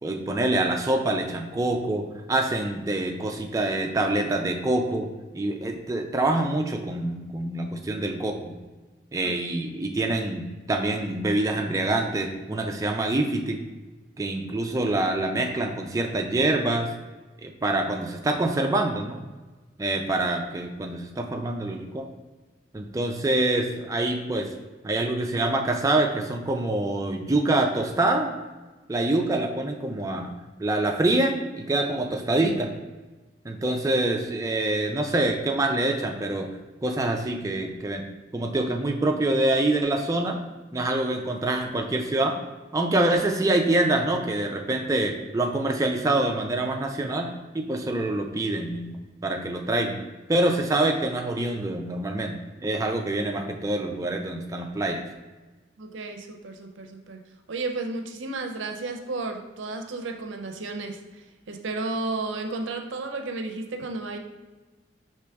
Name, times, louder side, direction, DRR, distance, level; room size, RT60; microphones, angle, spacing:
voice 1, 0.0-5.1 5.3-8.6 9.1-13.6 14.2-16.9 17.4-19.2 19.8-22.1 22.7-24.5 24.8-28.3 28.9-30.3 30.6-32.7 33.4-36.5 36.8-38.0 38.3-40.4 40.7-42.4 42.7-49.0 49.2-50.0 50.3-55.0, right 2 dB, 15° right, 3 dB, 0.3 m, -25 dB
voice 2, 55.8-57.2 57.5-64.2, right 3 dB, 80° right, 4 dB, 0.5 m, -33 dB
4.6 x 3.0 x 3.4 m, 1.2 s
head